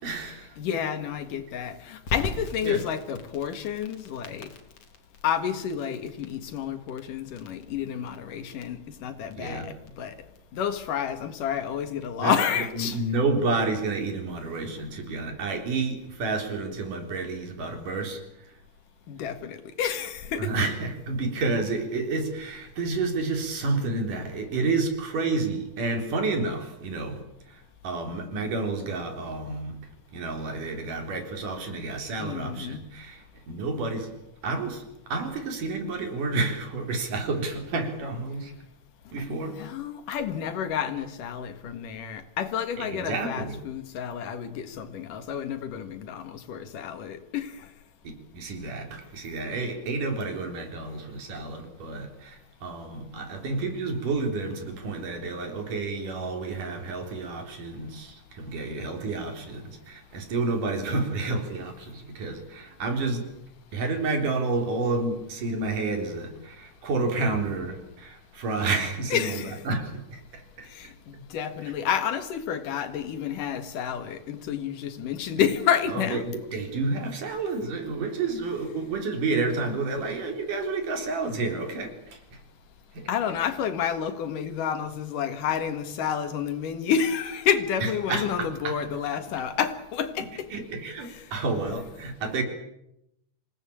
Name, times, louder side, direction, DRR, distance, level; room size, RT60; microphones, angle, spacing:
voice 1, 0.0-0.6 2.6-2.8 9.4-9.7 12.2-18.6 20.4-29.8 30.1-38.5 39.1-39.6 42.8-43.6 48.0-63.3 63.7-70.9 71.6-71.7 75.9-82.4 82.9-83.1 87.8-88.8 90.5-92.4, right 3 dB, 75° right, 5.4 m, -30 dB
voice 2, 0.6-4.5 5.2-10.2 10.5-13.0 19.1-20.6 32.2-32.8 39.3-47.5 69.1-69.6 70.7-76.2 83.1-90.5 91.0-91.2, left 8 dB, 80° left, 3.3 m, -30 dB
Crackle, 2.1-12.8, left 3 dB, 50° left, 3.6 m, -41 dB
27.0 x 18.5 x 8.8 m
omnidirectional pair, 3.7 m